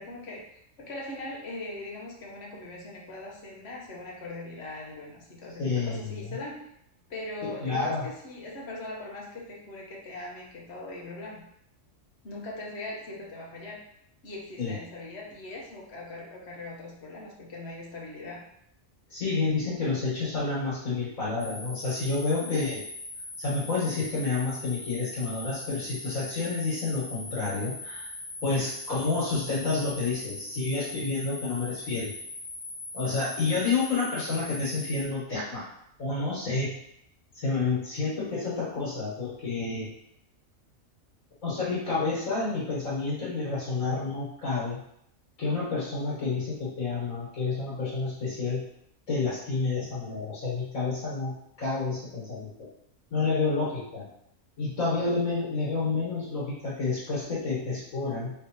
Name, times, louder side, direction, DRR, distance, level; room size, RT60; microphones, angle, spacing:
voice 1, 0.0-6.7 7.1-11.5 12.2-13.8 14.2-18.5 22.4-22.6, left 2 dB, 55° left, -3 dB, 1.2 m, -40 dB
voice 2, 5.6-6.4 7.4-8.1 14.6-14.8 19.1-22.8 23.4-28.1 28.4-32.1 32.9-35.7 36.0-36.8 37.3-39.9 41.4-44.8 45.4-48.6 49.1-52.7 53.1-54.1 54.6-58.3, left 3 dB, 70° left, -9 dB, 2.0 m, -29 dB
sound 1, 21.4-35.0, left 2 dB, 10° left, 0.7 m, -40 dB
4.3 x 3.4 x 2.9 m, 0.73 s
omnidirectional pair, 1.4 m